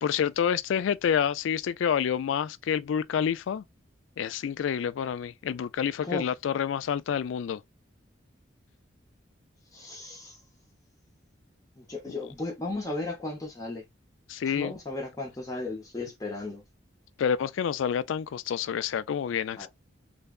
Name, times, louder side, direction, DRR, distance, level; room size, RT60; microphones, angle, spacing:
voice 1, 0.0-3.6 4.2-7.6 12.1-12.2 14.3-14.7 17.2-19.7, left 8 dB, 80° left, 0.3 m, -28 dB
voice 2, 9.7-10.4 11.8-13.8 14.6-16.6 19.6-19.7, left 2 dB, 15° left, 0.7 m, -35 dB
3.4 x 2.1 x 2.3 m
head